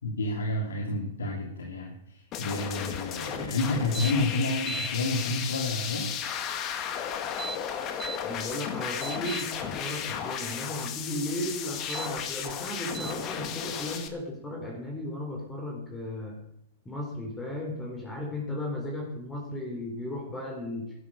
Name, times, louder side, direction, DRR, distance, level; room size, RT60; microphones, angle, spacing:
voice 1, 0.0-6.1, left 2 dB, 90° left, 1 dB, 2.8 m, -30 dB
sound 1, 2.3-14.1, left 8 dB, 35° left, 2.1 m, -34 dB
sound 2, 3.9-4.1 4.5-4.9 7.2-8.2 8.7-9.4 11.8-12.1 12.9-13.1, right 6 dB, 20° right, 0.5 m, -37 dB
voice 2, 8.2-16.4 16.9-20.9, left 1 dB, 15° left, 0 dB, 3.8 m, -35 dB
12.0 x 11.5 x 6.8 m, 0.77 s
hypercardioid pair, 125°, 0 cm